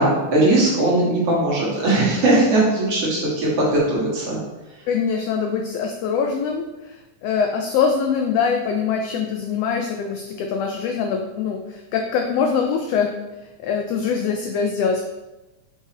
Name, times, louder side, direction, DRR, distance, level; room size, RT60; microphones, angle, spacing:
voice 1, 0.0-4.4, right 2 dB, 60° right, -5 dB, 2.5 m, -19 dB
voice 2, 4.9-13.1 13.6-15.0, left 6 dB, 85° left, 4 dB, 1.4 m, -23 dB
6.0 x 5.4 x 2.9 m, 1.0 s
omnidirectional pair, 3.3 m